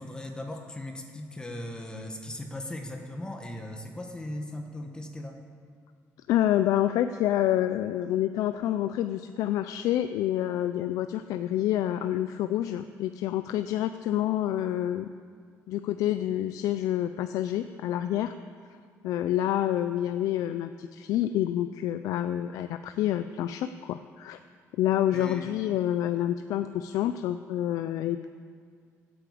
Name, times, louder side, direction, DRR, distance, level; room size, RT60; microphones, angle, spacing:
voice 1, 0.0-5.4 25.1-25.5, left 1 dB, 15° left, 3 dB, 1.4 m, -38 dB
voice 2, 6.3-15.1 15.7-18.3 19.0-24.4 24.8-28.3, left 12 dB, 85° left, 10 dB, 0.5 m, -28 dB
15.0 x 8.7 x 8.6 m, 2.1 s
cardioid pair, 140°, 6 cm